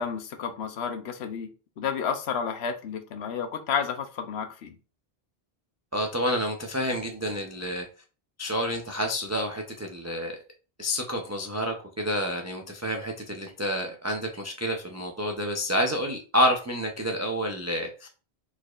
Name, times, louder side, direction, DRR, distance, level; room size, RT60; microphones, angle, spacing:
voice 1, 0.0-1.5 1.8-4.8, left 6 dB, 85° left, 7 dB, 1.0 m, -31 dB
voice 2, 5.9-7.9 8.4-10.3 10.8-18.1, equal, 20° right, 2 dB, 0.4 m, -29 dB
4.8 x 4.2 x 2.4 m, 0.36 s
omnidirectional pair, 1.1 m